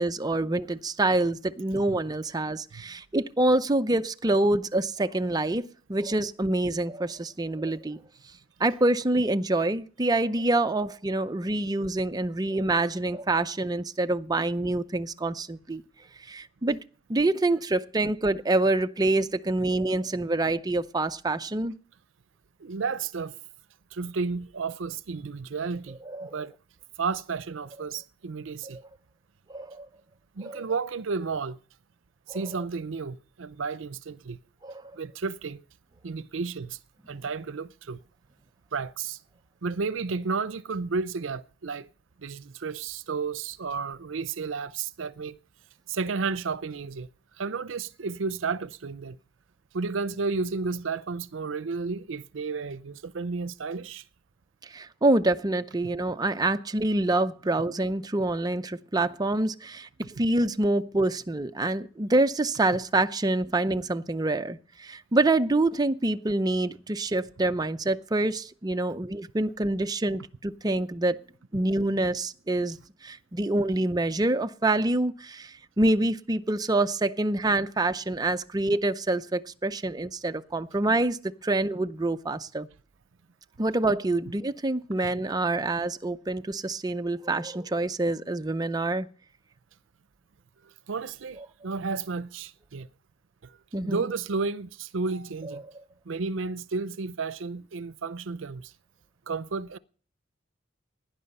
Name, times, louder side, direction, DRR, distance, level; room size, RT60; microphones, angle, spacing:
voice 1, 0.0-8.0 8.6-15.8 16.2-16.8 17.1-21.8 26.1-26.4 28.6-28.8 29.5-29.9 30.4-30.6 32.3-32.4 34.6-34.8 54.6-71.2 71.5-82.7 83.6-89.1 93.7-94.0, right 2 dB, 20° right, 0.6 m, -26 dB
voice 2, 22.6-23.4 23.9-26.5 27.0-28.8 30.4-31.6 32.3-34.4 34.9-35.6 36.0-36.8 37.1-38.0 38.7-39.2 39.6-41.9 42.2-45.4 45.9-47.1 47.4-49.2 49.7-54.0 90.6-92.9 93.4-93.6 93.8-95.6 96.1-98.7 99.3-99.8, right 4 dB, 80° right, 0.6 m, -32 dB
17.0 x 10.5 x 5.4 m
head